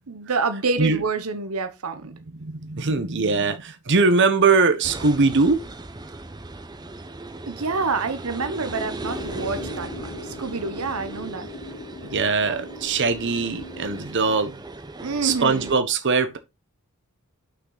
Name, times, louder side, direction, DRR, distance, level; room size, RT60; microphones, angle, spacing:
voice 1, 0.1-2.1 7.5-11.5 15.0-15.7, right 4 dB, 85° right, 0.9 m, -27 dB
voice 2, 2.4-5.6 12.1-14.6 15.2-16.4, right 4 dB, 55° right, 1.0 m, -21 dB
sound 1, 4.8-15.7, right 2 dB, 20° right, 0.8 m, -38 dB
sound 2, 9.0-14.0, left 1 dB, 85° left, 2.3 m, -38 dB
5.9 x 5.9 x 3.9 m
head